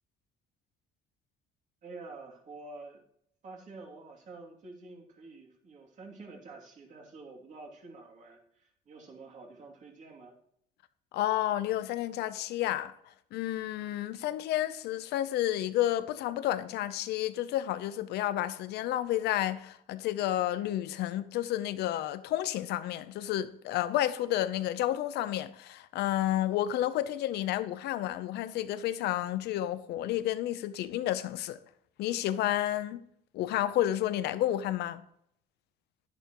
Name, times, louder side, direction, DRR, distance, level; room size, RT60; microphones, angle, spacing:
voice 1, 1.8-3.0 3.4-10.4, right 3 dB, 45° right, 2.9 m, -48 dB
voice 2, 11.1-12.9 13.3-31.6 32.0-33.0 33.3-35.0, left 13 dB, 80° left, 0.8 m, -31 dB
11.5 x 10.5 x 3.1 m
cardioid pair, 110°, 17 cm